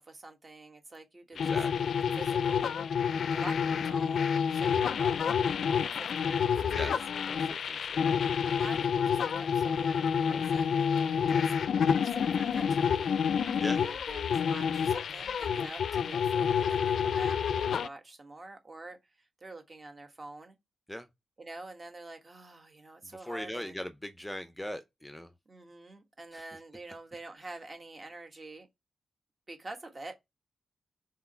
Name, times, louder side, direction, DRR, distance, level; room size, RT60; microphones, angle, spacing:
voice 1, 0.0-2.8 3.3-7.0 8.4-11.5 12.0-13.2 13.8-20.6 21.4-23.7 25.5-28.7 29.5-30.1, right 2 dB, 30° right, 1.3 m, -47 dB
sound 1, 1.4-17.9, left 7 dB, 75° left, 0.4 m, -28 dB
voice 2, 1.4-1.9 6.7-8.1 13.6-13.8 20.9-21.1 23.2-25.3 26.3-26.4, equal, 5° left, 0.6 m, -40 dB
4.7 x 3.9 x 5.5 m
wide cardioid pair, 120°, 0 cm